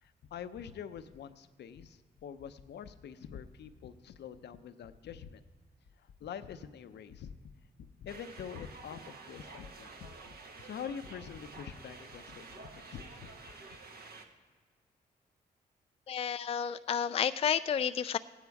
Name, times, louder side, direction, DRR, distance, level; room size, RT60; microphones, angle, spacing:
voice 1, 0.0-5.4 6.0-7.3 8.0-13.3 13.7-13.8, left 8 dB, 70° left, 11 dB, 0.7 m, -45 dB
sound 1, 8.1-14.3, right 3 dB, 55° right, 1.4 m, -50 dB
voice 2, 16.1-18.2, left 8 dB, 35° left, 12 dB, 0.4 m, -31 dB
15.0 x 9.1 x 4.7 m, 1.5 s
supercardioid pair, 55°, 18 cm